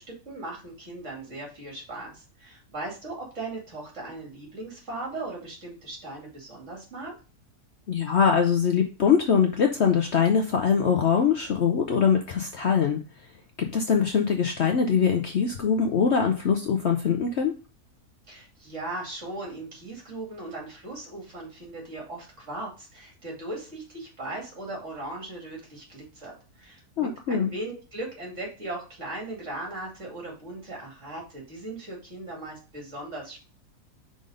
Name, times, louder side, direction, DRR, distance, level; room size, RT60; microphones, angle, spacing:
voice 1, 0.0-7.1 18.3-33.4, right 2 dB, 50° right, -2 dB, 2.7 m, -38 dB
voice 2, 7.9-13.0 13.6-17.5 27.0-27.5, left 6 dB, 60° left, 4 dB, 0.8 m, -23 dB
5.3 x 3.9 x 4.9 m, 0.34 s
omnidirectional pair, 1.6 m